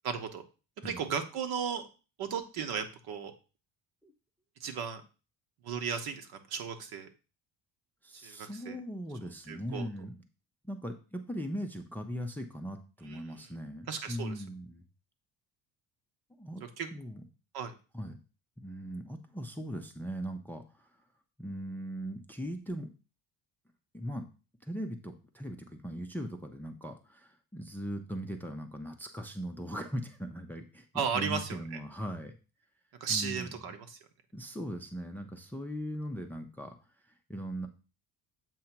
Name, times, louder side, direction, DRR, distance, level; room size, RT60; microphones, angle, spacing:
voice 1, 0.0-0.4 0.8-1.9 2.2-3.3 4.6-5.0 5.6-7.1 8.2-8.8 9.5-9.9 13.1-13.5 13.9-14.4 16.6-16.9 17.5-17.7 30.9-31.8 33.0-34.0, right 6 dB, 70° right, 7 dB, 1.2 m, -35 dB
voice 2, 8.0-10.2 10.6-14.8 16.4-16.6 16.9-17.2 17.9-18.2 18.6-20.9 21.4-22.9 23.9-24.2 24.6-32.4 33.1-33.5 34.3-36.7 37.3-37.7, equal, 5° left, 6 dB, 0.4 m, -39 dB
7.6 x 2.8 x 5.7 m, 0.33 s
cardioid pair, 150°, 39 cm